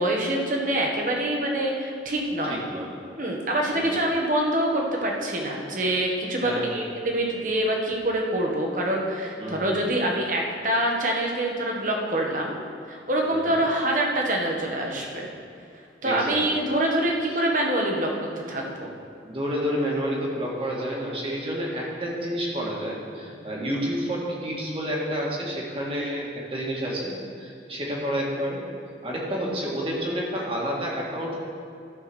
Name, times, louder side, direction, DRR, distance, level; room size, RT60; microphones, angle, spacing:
voice 1, 0.0-2.6 3.2-12.6 12.9-15.3 16.0-18.1 18.5-18.9, right 1 dB, 45° right, 0 dB, 1.5 m, -25 dB
voice 2, 2.5-2.9 3.7-4.0 6.4-6.8 9.4-9.8 13.3-13.5 16.0-16.6 19.2-28.6 29.0-31.4, equal, 30° right, -4 dB, 2.0 m, -30 dB
13.5 x 4.6 x 6.2 m, 2.5 s
head